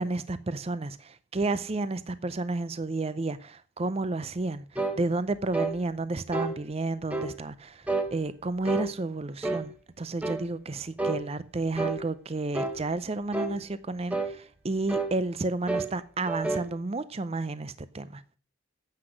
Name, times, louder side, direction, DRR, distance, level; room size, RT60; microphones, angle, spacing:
voice 1, 0.0-18.2, right 2 dB, 30° right, 0.5 m, -31 dB
sound 1, 4.7-5.0 5.5-5.8 6.3-6.6 7.1-7.3 7.9-8.1 8.6-8.9 9.4-9.7 10.2-10.4 11.0-11.2 11.7-12.0 12.5-12.8 13.3-13.6 14.1-14.3 14.9-15.1 15.7-15.9 16.3-16.7, right 2 dB, 5° right, 1.1 m, -29 dB
9.8 x 8.0 x 6.2 m
head